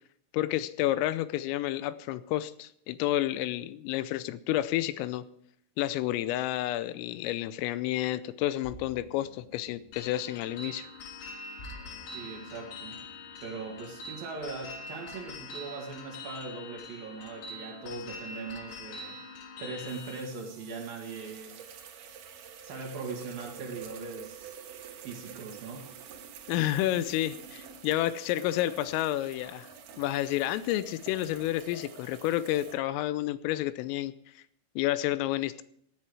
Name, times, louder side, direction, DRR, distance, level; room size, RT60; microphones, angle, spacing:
voice 1, 0.3-5.2 5.8-10.9 26.5-29.7 30.0-34.1 34.8-35.6, left 14 dB, 85° left, 15 dB, 3.3 m, -30 dB
sound 1, 8.6-14.3, left 1 dB, 15° left, 6.8 m, -53 dB
sound 2, 9.9-20.2, left 2 dB, 65° left, 2.3 m, -44 dB
voice 2, 12.1-13.0 13.4-19.2 19.6-21.6 22.6-24.5 25.0-25.9, right 4 dB, 55° right, 0 dB, 3.2 m, -40 dB
sound 3, 19.9-32.7, right 8 dB, 75° right, 1.9 m, -48 dB
17.0 x 10.0 x 4.7 m, 0.68 s
omnidirectional pair, 5.9 m